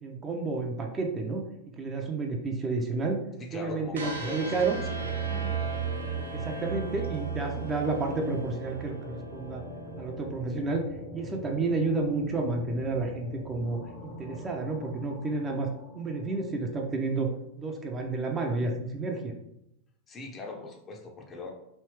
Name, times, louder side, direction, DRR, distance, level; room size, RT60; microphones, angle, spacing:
voice 1, 0.0-1.4 1.8-3.2 3.5-4.8 6.3-9.6 10.0-10.8 11.1-15.7 15.9-17.3 17.6-19.3, right 3 dB, 20° right, 2 dB, 0.5 m, -30 dB
voice 2, 3.4-4.5 4.8-5.6 6.5-6.8 20.1-21.5, left 3 dB, 25° left, 2 dB, 0.6 m, -41 dB
sound 1, 3.8-16.9, left 1 dB, 60° left, 1.0 m, -43 dB
sound 2, 3.9-10.0, right 6 dB, 70° right, 0.6 m, -36 dB
3.3 x 2.6 x 3.2 m, 0.82 s
figure-of-eight pair, 90°, 0 cm